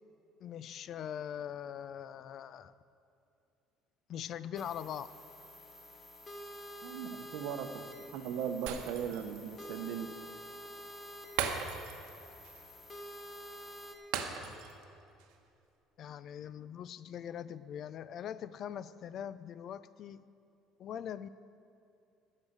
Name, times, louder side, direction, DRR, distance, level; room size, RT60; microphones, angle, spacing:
voice 1, 0.4-2.7 4.1-5.1 16.0-20.3 20.8-21.3, left 9 dB, 45° left, 16 dB, 0.3 m, -42 dB
sound 1, 4.6-14.0, equal, 20° left, 0.9 m, -49 dB
voice 2, 6.8-10.2, right 8 dB, 70° right, 8 dB, 0.8 m, -38 dB
Shatter, 8.7-9.4 9.7-9.8 11.4-12.1 12.4-12.6 14.1-14.8 15.2-15.3, right 7 dB, 90° right, 1.0 m, -37 dB
15.5 x 6.4 x 6.6 m, 2.6 s
cardioid pair, 155°, 0 cm